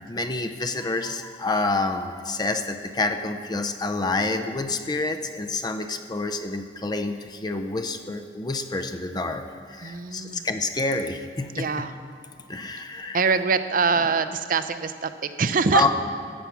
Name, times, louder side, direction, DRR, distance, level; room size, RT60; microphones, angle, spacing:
voice 1, 0.1-11.9 12.5-13.3 15.7-15.9, left 3 dB, 25° left, 6 dB, 0.5 m, -28 dB
voice 2, 9.8-10.4 11.5-11.9 13.1-15.9, right 4 dB, 50° right, 11 dB, 0.6 m, -24 dB
13.5 x 8.3 x 6.0 m, 2.1 s
head